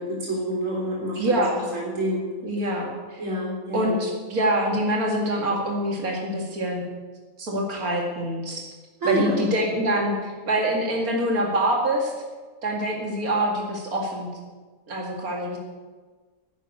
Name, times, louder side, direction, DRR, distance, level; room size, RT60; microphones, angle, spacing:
voice 1, 0.0-1.4 1.7-2.3 3.2-4.0 9.0-9.4, right 1 dB, 65° right, -4 dB, 3.8 m, -27 dB
voice 2, 1.2-1.6 2.4-3.2 3.7-6.8 7.4-8.7 9.0-12.1 12.6-14.3 14.9-15.6, right 1 dB, 85° right, 0 dB, 2.6 m, -25 dB
11.0 x 10.0 x 9.5 m, 1.4 s
omnidirectional pair, 1.5 m